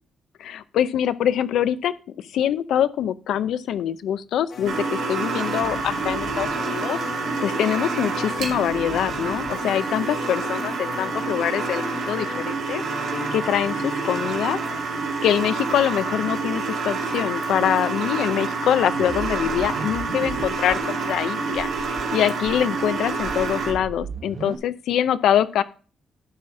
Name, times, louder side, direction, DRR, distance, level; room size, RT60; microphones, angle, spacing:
voice 1, 0.4-7.0 7.4-12.8 13.3-14.6 15.2-21.7 22.1-25.6, left 10 dB, 85° left, 14 dB, 0.6 m, -24 dB
sound 1, 4.5-14.8, left 5 dB, 55° left, 1.1 m, -37 dB
sound 2, 4.6-23.7, right 4 dB, 90° right, 2.3 m, -28 dB
sound 3, 18.9-20.8 21.1-21.2 21.5-22.0 22.4-24.5, right 5 dB, 60° right, 1.3 m, -36 dB
11.0 x 4.3 x 6.0 m, 0.38 s
cardioid pair, 150°, 0 cm